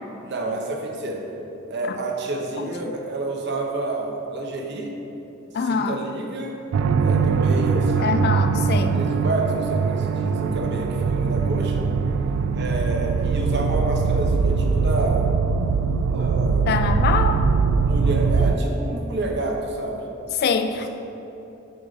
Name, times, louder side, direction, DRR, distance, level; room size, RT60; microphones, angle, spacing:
voice 1, 0.2-1.2 1.7-4.9 5.6-6.6 7.0-7.9 8.9-11.9 12.5-15.2 16.0-16.8 17.8-20.0 20.7-20.9, right 2 dB, 60° right, 1 dB, 0.9 m, -29 dB
voice 2, 5.5-6.0 8.0-9.0 16.7-17.4 20.3-20.9, left 5 dB, 55° left, 8 dB, 0.3 m, -24 dB
sound 1, 6.7-18.6, right 5 dB, 80° right, 0.3 m, -21 dB
6.6 x 4.0 x 5.5 m, 2.9 s
head